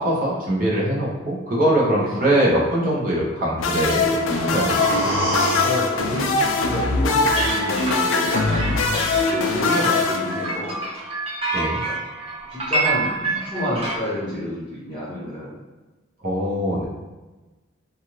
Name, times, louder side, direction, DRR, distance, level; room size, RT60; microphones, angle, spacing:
voice 1, 0.0-5.1 11.5-11.8 16.2-16.9, right 1 dB, 50° right, -5 dB, 0.9 m, -22 dB
sound 1, 3.6-10.9, left 3 dB, 80° left, 0.4 m, -22 dB
sound 2, 3.8-7.7 8.1-8.2, right 1 dB, 85° right, 1.3 m, -29 dB
voice 2, 5.6-10.8 11.8-12.0 12.5-15.5, equal, 15° right, -15 dB, 1.2 m, -29 dB
sound 3, 7.3-14.0, right 3 dB, 30° right, 0.5 m, -27 dB
2.5 x 2.5 x 3.0 m, 1.2 s
head